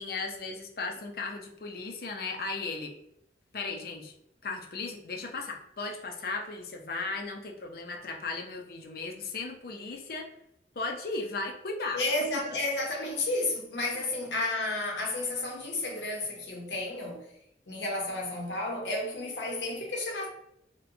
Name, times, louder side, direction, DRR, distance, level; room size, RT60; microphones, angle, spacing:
voice 1, 0.0-2.9 3.5-4.1 4.4-10.3 10.7-12.0, left 3 dB, 55° left, 0.5 m, -36 dB
voice 2, 11.9-17.3 17.7-20.3, left 2 dB, 85° left, 1.0 m, -32 dB
4.2 x 2.2 x 2.6 m
head